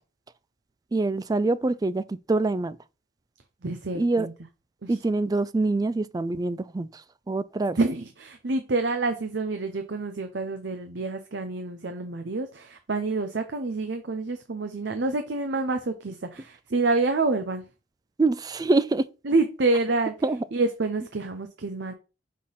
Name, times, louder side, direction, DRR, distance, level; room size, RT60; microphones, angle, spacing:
voice 1, 0.9-2.8 3.9-4.3 4.9-7.8 18.2-19.1 20.2-20.4, right 2 dB, 20° right, 0.3 m, -25 dB
voice 2, 3.6-4.3 4.8-5.0 7.8-17.7 19.2-20.1 20.5-21.9, right 3 dB, 70° right, 0.7 m, -27 dB
6.3 x 3.7 x 5.7 m
head